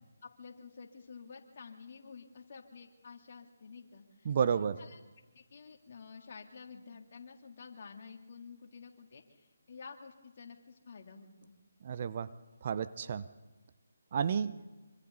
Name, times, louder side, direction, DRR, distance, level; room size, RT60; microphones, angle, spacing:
voice 1, 0.2-5.0 5.3-11.5, left 5 dB, 50° left, 1 dB, 3.4 m, -51 dB
voice 2, 4.2-4.8 11.8-12.3 12.6-13.2 14.1-14.6, right 7 dB, 40° right, 13 dB, 0.8 m, -31 dB
26.5 x 26.5 x 4.1 m, 1.2 s
figure-of-eight pair, 155°, 0 cm